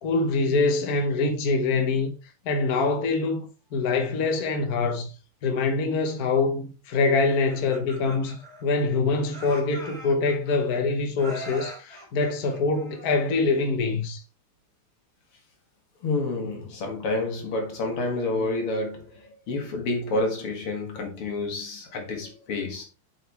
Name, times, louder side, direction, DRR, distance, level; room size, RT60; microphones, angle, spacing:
voice 1, 0.0-2.1 2.4-5.1 5.4-14.2, left 3 dB, 50° left, 1.5 m, -24 dB
Laughter, 7.3-9.0 9.3-10.8 11.2-13.4, right 1 dB, 30° left, 3.8 m, -42 dB
voice 2, 16.0-22.8, left 2 dB, 80° left, 2.8 m, -29 dB
7.8 x 5.2 x 3.4 m
omnidirectional pair, 2.4 m